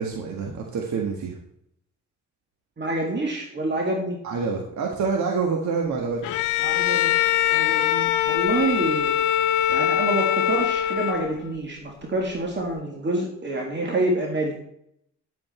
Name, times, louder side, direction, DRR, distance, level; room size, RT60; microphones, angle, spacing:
voice 1, 0.0-1.4 4.2-6.3, right 5 dB, 65° right, 0 dB, 1.9 m, -27 dB
voice 2, 2.8-4.2 6.6-7.1 7.5-9.1 9.7-14.6, right 2 dB, 35° right, 0 dB, 2.2 m, -27 dB
Bowed string instrument, 6.2-11.5, left 11 dB, 85° left, 0.6 m, -22 dB
10.5 x 8.3 x 4.5 m, 0.73 s
cardioid pair, 90°, 30 cm